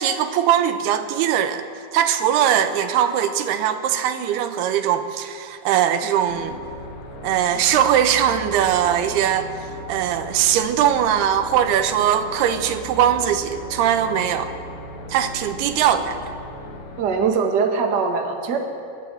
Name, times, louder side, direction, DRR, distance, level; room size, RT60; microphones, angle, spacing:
voice 1, 0.0-1.6 1.9-6.6 7.2-9.5 9.9-14.5 15.1-16.3, right 9 dB, 85° right, 8 dB, 3.1 m, -20 dB
sound 1, 6.3-17.0, left 1 dB, 65° left, 2.8 m, -37 dB
voice 2, 17.0-18.6, right 5 dB, 40° right, 2 dB, 1.6 m, -21 dB
30.0 x 11.0 x 7.9 m, 2.4 s
omnidirectional pair, 4.5 m